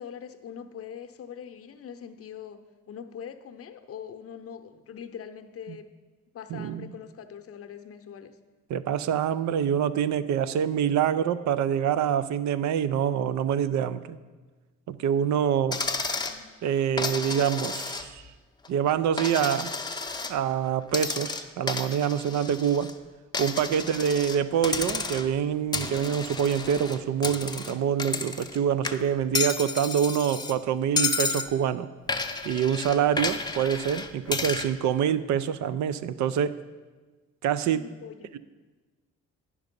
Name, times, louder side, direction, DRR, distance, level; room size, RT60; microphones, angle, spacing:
voice 1, 0.0-2.6 2.9-5.9 6.3-8.4 15.9-16.5 23.8-24.0 37.7-38.3, left 8 dB, 50° left, 8 dB, 0.7 m, -43 dB
voice 2, 6.5-6.9 8.7-14.2 14.9-15.8 16.6-18.2 18.7-19.7 20.3-22.9 23.4-31.9 32.4-36.6 37.4-37.9 38.3-38.4, right 8 dB, 70° right, 14 dB, 0.5 m, -26 dB
Coin (dropping), 15.7-16.4 17.0-18.3 18.6-20.4 20.9-22.9 23.3-24.4 24.6-25.4 25.7-28.6 28.8-30.5 31.0-31.5 32.1-34.7, left 4 dB, 15° left, 0.6 m, -31 dB
9.7 x 6.0 x 5.2 m, 1.3 s
cardioid pair, 90°, 30 cm